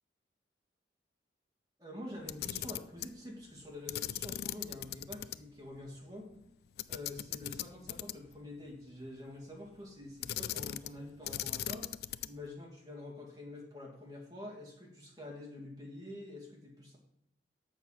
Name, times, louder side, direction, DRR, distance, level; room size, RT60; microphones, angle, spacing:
voice 1, 1.8-6.4 6.9-11.9 12.2-17.0, left 1 dB, 20° right, -1 dB, 2.0 m, -47 dB
Camera, 2.2-3.2 3.9-5.4 5.7-5.8 6.8-8.4 10.2-11.0 11.2-12.5, left 12 dB, 60° left, 0.3 m, -39 dB
7.5 x 6.6 x 5.8 m, 0.75 s
head